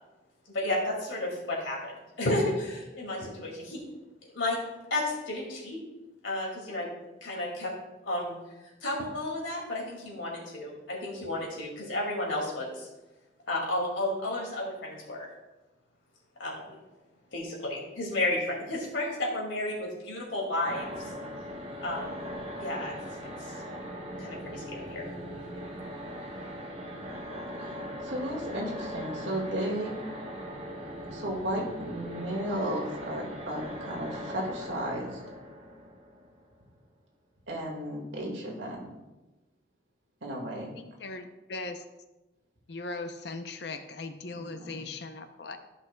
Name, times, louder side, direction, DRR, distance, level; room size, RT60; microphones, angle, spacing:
voice 1, 0.5-3.8 4.3-4.6 4.9-5.8 6.2-6.9 7.2-7.7 8.1-8.4 8.8-12.9 13.5-15.3 16.4-16.8 17.3-20.9 21.8-22.3 22.6-22.9 23.2-23.5 24.2-25.0, left 1 dB, 85° left, -2 dB, 2.3 m, -32 dB
sound 1, 20.6-36.6, equal, 30° right, 1.0 m, -40 dB
voice 2, 27.6-29.9 31.1-35.2 37.5-38.8 40.2-40.7 44.3-44.8, equal, 75° right, -1 dB, 1.9 m, -34 dB
voice 3, 40.8-41.8 42.7-45.6, left 3 dB, 60° left, 8 dB, 0.6 m, -39 dB
13.5 x 5.7 x 2.2 m, 1.1 s
head